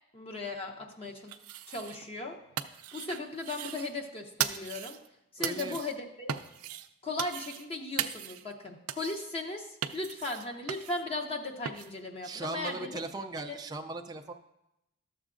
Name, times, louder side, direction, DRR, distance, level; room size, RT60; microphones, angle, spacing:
voice 1, 0.1-1.3 1.7-2.4 2.9-5.0 5.3-6.3 7.0-12.9 13.5-13.6, left 2 dB, 25° left, 2 dB, 0.7 m, -37 dB
sound 1, 1.3-2.1 2.4-3.9 4.4-5.1 5.4-6.0 6.3-6.9 7.2-7.7 8.0-8.5 8.9-9.3 9.8-11.0 11.7-11.9, right 10 dB, 90° right, 0.4 m, -37 dB
voice 2, 5.4-5.8 12.2-14.3, right 2 dB, 20° right, 5 dB, 0.3 m, -38 dB
13.0 x 7.0 x 2.5 m, 0.88 s
head